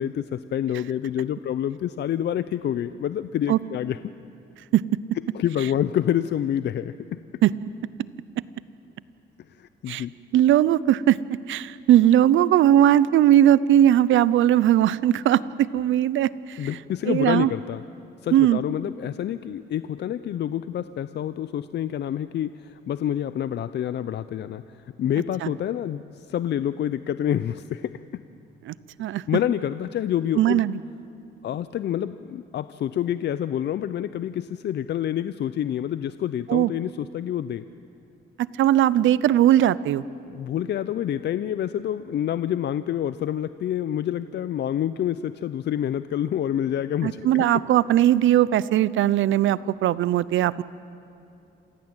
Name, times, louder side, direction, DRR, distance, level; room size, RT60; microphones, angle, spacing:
voice 1, 0.0-4.0 5.3-7.2 9.5-10.1 16.6-17.8 18.2-28.2 29.3-30.6 31.4-37.7 40.3-47.6, left 10 dB, 60° left, 13 dB, 0.6 m, -27 dB
voice 2, 10.3-11.2 11.5-16.7 17.1-17.5 18.3-18.6 25.4-25.5 28.7-29.2 30.4-30.8 36.5-36.7 38.6-40.0 47.0-50.6, right 12 dB, 75° right, 18 dB, 0.7 m, -19 dB
27.5 x 16.0 x 8.9 m, 2.7 s
cardioid pair, 90°, 20 cm